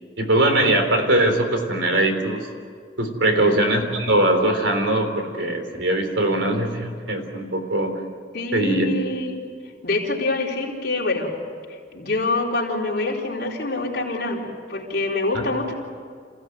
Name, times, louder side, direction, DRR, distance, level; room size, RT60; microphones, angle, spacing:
voice 1, 0.2-2.5 3.0-7.9 8.5-8.9 15.3-15.4, right 1 dB, 85° right, 5 dB, 3.5 m, -21 dB
voice 2, 3.3-3.6 8.3-9.4 9.8-11.3 11.9-15.7, left 2 dB, 55° left, -3 dB, 4.1 m, -25 dB
27.5 x 16.5 x 9.2 m, 2.1 s
head